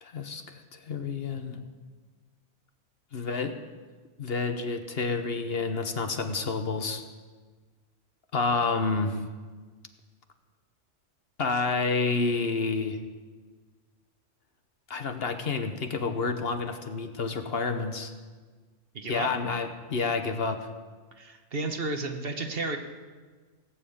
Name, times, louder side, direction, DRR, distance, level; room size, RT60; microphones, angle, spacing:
voice 1, 0.0-1.7 3.1-3.5 4.2-7.0 8.3-9.2 11.4-13.0 14.9-18.1 19.1-20.7, left 4 dB, 55° left, 7 dB, 1.1 m, -29 dB
voice 2, 18.9-19.3 21.1-22.8, right 3 dB, 50° right, 5 dB, 1.3 m, -32 dB
17.0 x 7.3 x 8.6 m, 1.4 s
omnidirectional pair, 1.3 m